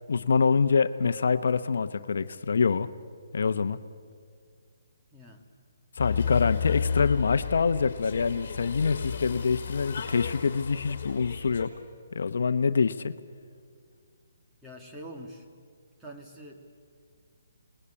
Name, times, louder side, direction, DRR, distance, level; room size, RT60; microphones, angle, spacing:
voice 1, 0.1-2.9 3.3-3.8 6.0-11.7 12.1-13.1, left 5 dB, 65° left, 11 dB, 0.9 m, -25 dB
voice 2, 5.1-5.5 14.6-15.5 16.0-16.6, right 1 dB, 10° right, 0 dB, 1.9 m, -44 dB
sound 1, 6.0-11.7, left 6 dB, 45° left, 4.7 m, -33 dB
28.0 x 19.5 x 8.8 m, 2.1 s
hypercardioid pair, 170°, 0 cm